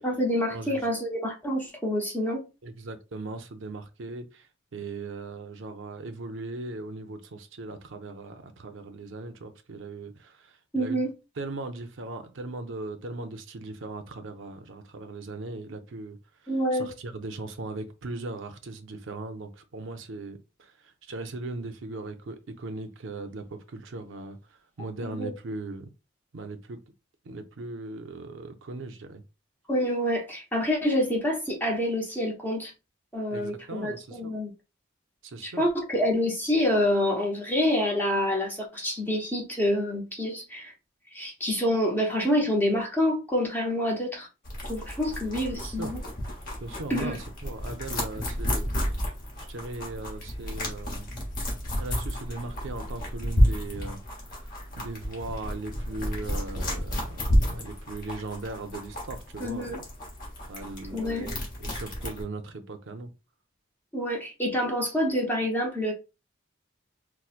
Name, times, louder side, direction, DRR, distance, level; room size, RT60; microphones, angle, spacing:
voice 1, 0.0-2.4 10.7-11.1 16.5-16.9 25.0-25.3 29.7-32.7 33.1-34.5 35.4-40.7 41.1-44.3 44.7-46.0 46.9-47.2 59.4-59.8 60.9-61.3 63.9-65.9, left 1 dB, 10° left, 0.6 m, -27 dB
voice 2, 0.5-0.8 2.6-11.0 11.4-16.2 16.7-25.9 26.3-26.8 27.2-29.2 33.3-34.3 35.2-35.7 45.5-45.9 46.6-49.1 49.4-51.1 51.7-54.0 54.8-59.7 60.5-63.1, right 3 dB, 75° right, 0.5 m, -39 dB
A rabbit is eating a cucumber, 44.4-62.2, equal, 45° left, 1.1 m, -31 dB
4.3 x 2.1 x 2.4 m
head